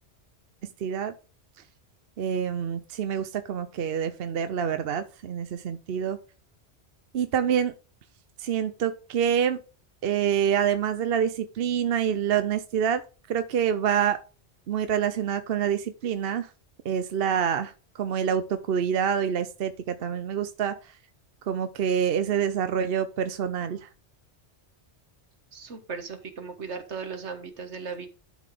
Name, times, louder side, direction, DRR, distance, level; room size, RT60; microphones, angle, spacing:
voice 1, 0.8-1.1 2.2-6.2 7.1-7.7 8.4-9.6 10.0-13.0 13.3-14.2 14.7-16.5 16.8-21.0 21.5-23.9, right 8 dB, 60° right, 10 dB, 0.9 m, -26 dB
voice 2, 25.5-28.1, right 5 dB, 80° right, 7 dB, 1.7 m, -37 dB
11.5 x 4.0 x 5.0 m, 0.34 s
omnidirectional pair, 1.1 m